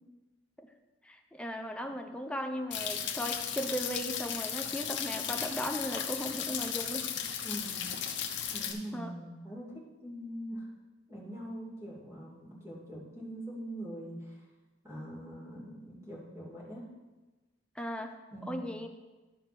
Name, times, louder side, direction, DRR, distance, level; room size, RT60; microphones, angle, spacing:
voice 1, 1.0-7.1 8.9-9.1 17.8-18.1 18.5-18.9, equal, 5° left, 4 dB, 0.7 m, -37 dB
sound 1, 2.7-8.7, left 8 dB, 65° left, 1.1 m, -35 dB
voice 2, 7.4-7.8 8.5-10.7 11.1-14.4 14.8-16.9 18.3-18.7, right 1 dB, 15° right, -5 dB, 2.9 m, -43 dB
12.0 x 4.9 x 6.1 m, 1.2 s
head